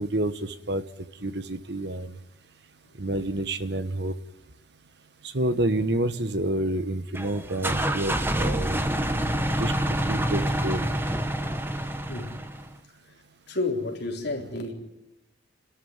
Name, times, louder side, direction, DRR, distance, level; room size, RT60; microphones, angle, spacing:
voice 1, 0.0-2.1 3.0-4.1 5.2-8.8 9.6-9.7 10.1-10.9, right 1 dB, 55° right, 1.3 m, -28 dB
sound 1, 7.1-12.7, right 1 dB, 10° right, 1.1 m, -27 dB
voice 2, 12.1-12.4 13.1-13.2 13.5-14.7, left 2 dB, 55° left, 4.1 m, -30 dB
30.0 x 13.0 x 9.6 m
head